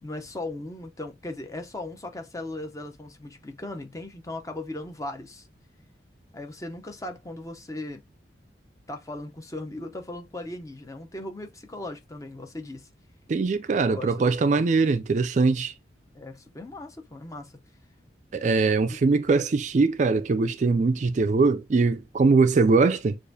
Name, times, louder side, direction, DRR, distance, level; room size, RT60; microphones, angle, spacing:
voice 1, 0.0-5.5 6.3-8.0 8.9-12.9 13.9-14.1 16.1-17.6, left 2 dB, 20° left, 0.7 m, -38 dB
voice 2, 13.3-15.7 18.3-23.2, right 4 dB, 40° right, 0.3 m, -22 dB
6.6 x 2.5 x 2.7 m
head